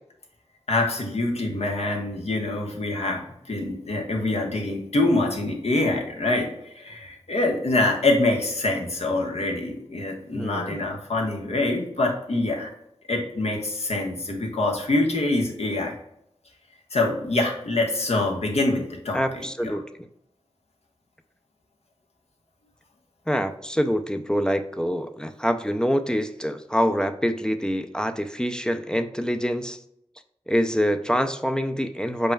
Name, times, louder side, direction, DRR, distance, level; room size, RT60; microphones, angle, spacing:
voice 1, 0.7-12.7 13.1-15.9 16.9-19.7, left 2 dB, 70° left, 1 dB, 1.2 m, -25 dB
voice 2, 10.3-10.8 19.1-19.8 23.3-29.8 30.5-32.3, equal, 5° left, 8 dB, 0.4 m, -25 dB
5.2 x 4.3 x 2.3 m, 0.76 s
wide cardioid pair, 60°, 11 cm